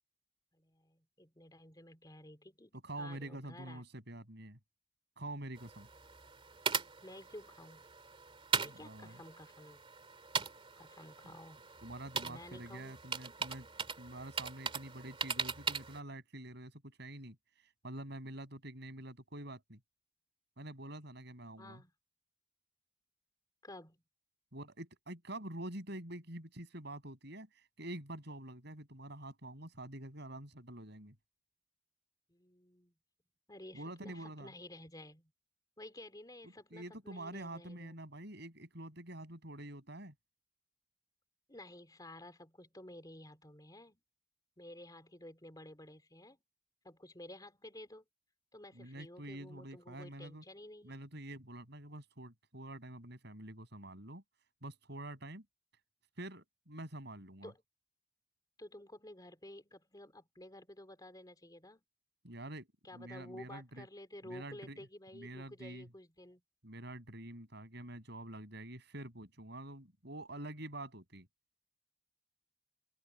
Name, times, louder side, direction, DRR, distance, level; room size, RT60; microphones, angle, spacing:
voice 1, 0.5-3.8 7.0-7.9 8.6-9.8 10.8-11.6 12.2-13.0 21.6-21.9 23.6-24.0 32.3-32.9 33.5-35.3 35.8-38.0 41.5-44.0 44.6-46.4 46.8-48.0 48.5-50.9 57.4-57.6 58.6-61.8 62.8-66.4, left 1 dB, 20° left, 3.2 m, -52 dB
voice 2, 2.8-4.6 5.2-5.9 8.6-9.2 11.2-11.4 11.8-13.7 14.0-17.4 17.8-19.8 20.6-21.8 24.5-31.1 33.7-34.5 36.7-40.1 48.7-50.4 50.8-54.2 54.6-55.4 56.2-57.5 62.2-62.7 62.9-63.9 64.2-64.8 65.1-65.9 66.6-71.3, right 1 dB, 55° right, 6.8 m, -47 dB
sound 1, 5.6-16.0, right 5 dB, 25° right, 2.7 m, -40 dB
open air
head